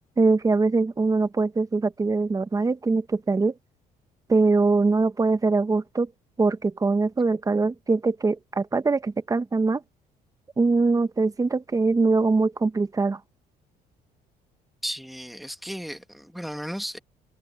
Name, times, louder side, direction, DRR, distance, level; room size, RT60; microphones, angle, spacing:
voice 1, 0.2-3.5 4.3-6.1 6.4-9.8 10.6-13.2, right 3 dB, 20° right, 1.0 m, -22 dB
voice 2, 14.8-17.0, equal, ahead, 1.7 m, -34 dB
cardioid pair, 110°, 17 cm